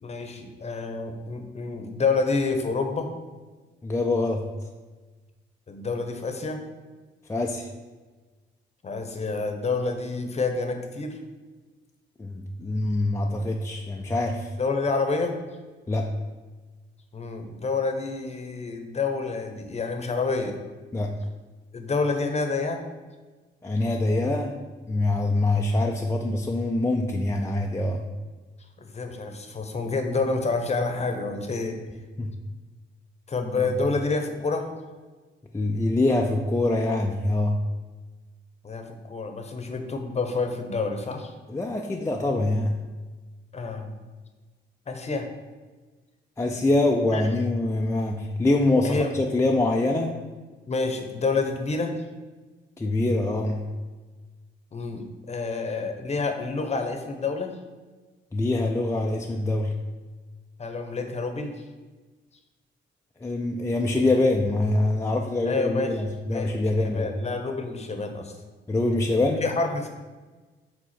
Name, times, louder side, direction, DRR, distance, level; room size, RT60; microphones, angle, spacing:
voice 1, 0.0-3.1 5.7-6.6 8.8-11.2 14.6-15.3 17.1-20.6 21.7-22.8 28.8-31.8 33.3-34.7 38.6-41.3 43.5-43.9 44.9-45.3 47.1-47.2 48.8-49.1 50.7-51.9 54.7-57.5 60.6-61.5 65.5-65.9 66.3-68.3 69.4-69.9, left 3 dB, 35° left, 5 dB, 0.9 m, -28 dB
voice 2, 3.8-4.5 7.3-7.7 12.2-14.5 15.9-16.2 20.9-21.2 23.6-24.6 24.9-28.1 32.2-32.4 33.6-33.7 35.5-37.7 41.5-42.8 46.4-50.1 52.8-53.7 58.3-59.8 63.2-67.1 68.7-69.4, left 2 dB, 15° left, 1 dB, 0.5 m, -24 dB
5.0 x 3.8 x 5.7 m, 1.3 s
cardioid pair, 90°, 20 cm